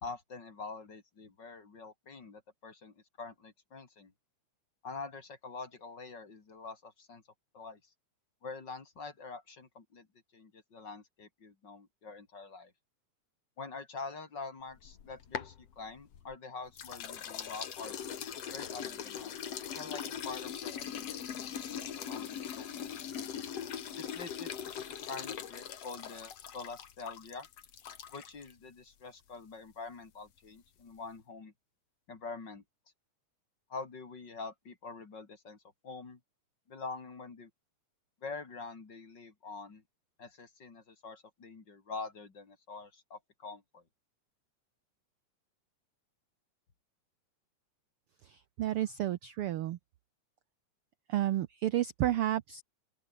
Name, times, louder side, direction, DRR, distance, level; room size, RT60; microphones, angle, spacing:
voice 1, 0.0-4.1 4.8-7.2 7.5-7.8 8.4-10.1 10.3-12.7 13.6-18.0 18.5-19.3 19.7-21.1 21.3-22.7 24.0-27.5 28.1-31.5 32.1-32.6 33.7-35.6 35.8-36.2 36.7-37.5 38.2-39.8 40.2-43.8, left 4 dB, 35° left, 3.2 m, -45 dB
sound 1, 14.8-16.4 16.8-28.5, left 9 dB, 55° left, 2.7 m, -41 dB
voice 2, 48.6-49.8 51.1-52.6, right 13 dB, 80° right, 1.2 m, -31 dB
open air
omnidirectional pair, 3.5 m